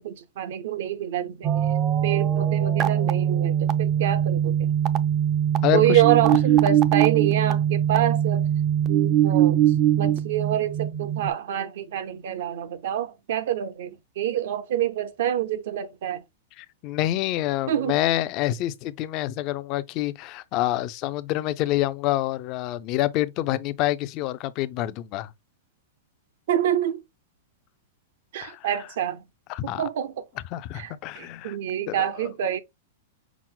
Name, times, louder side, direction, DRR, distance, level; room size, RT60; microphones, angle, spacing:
voice 1, 0.0-1.6 2.0-4.7 5.7-8.5 8.9-9.6 10.0-16.2 17.7-18.0 26.5-27.0 28.3-29.2 29.8-30.2 30.7-32.6, right 11 dB, 65° right, 0.6 m, -26 dB
sound 1, 1.4-11.3, right 10 dB, 25° right, 0.4 m, -22 dB
voice 2, 5.6-6.0 16.6-25.3 28.4-28.7 29.5-29.8 30.5-31.6 31.9-32.3, left 14 dB, 35° left, 0.4 m, -27 dB
5.9 x 2.0 x 3.7 m
supercardioid pair, 155°, 0 cm